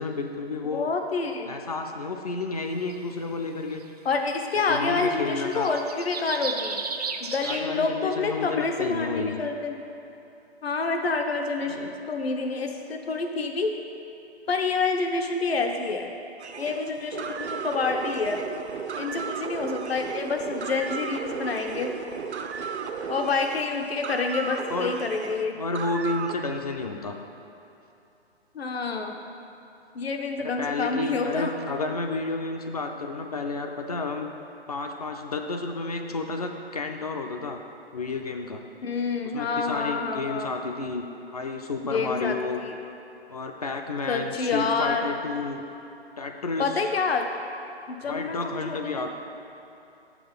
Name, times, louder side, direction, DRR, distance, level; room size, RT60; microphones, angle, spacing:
voice 1, 0.0-0.9 1.5-3.8 4.7-5.7 7.4-9.4 11.6-11.9 24.7-24.9 25.6-27.2 30.4-34.3 34.7-37.6 37.9-38.6 39.3-41.0 41.3-42.6 43.3-45.6 46.2-46.7 48.1-49.1, left 3 dB, 40° left, 4 dB, 0.4 m, -31 dB
voice 2, 0.7-1.5 4.0-6.8 7.2-9.8 10.6-13.7 14.5-16.1 16.6-18.4 19.0-21.9 23.1-25.6 28.5-29.1 29.9-31.5 38.8-40.5 41.9-42.8 44.1-45.1 46.6-47.3 47.9-49.1, left 4 dB, 70° left, 4 dB, 0.9 m, -28 dB
sound 1, 2.9-3.0 4.1-4.2 4.4-7.6, right 5 dB, 40° right, 0.4 m, -34 dB
sound 2, 16.4-26.4, right 6 dB, 90° right, 0.6 m, -35 dB
6.3 x 6.0 x 5.3 m, 2.8 s
hypercardioid pair, 150°, 32 cm